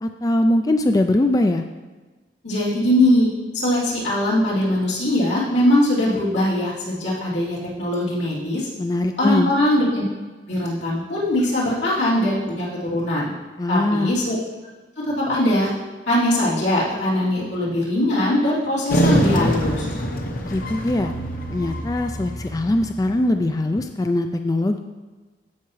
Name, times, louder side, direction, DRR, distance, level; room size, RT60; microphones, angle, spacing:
voice 1, 0.0-1.6 8.8-9.5 13.6-14.1 20.5-21.1 21.5-24.8, left 1 dB, 20° left, 6 dB, 0.3 m, -21 dB
voice 2, 2.4-8.7 9.2-10.0 10.5-13.3 13.7-14.4 15.1-15.7 16.1-19.9, left 1 dB, 85° left, -7 dB, 3.0 m, -21 dB
sound 1, 18.9-23.5, right 1 dB, 50° left, 0.9 m, -24 dB
14.5 x 5.7 x 3.2 m, 1.3 s
head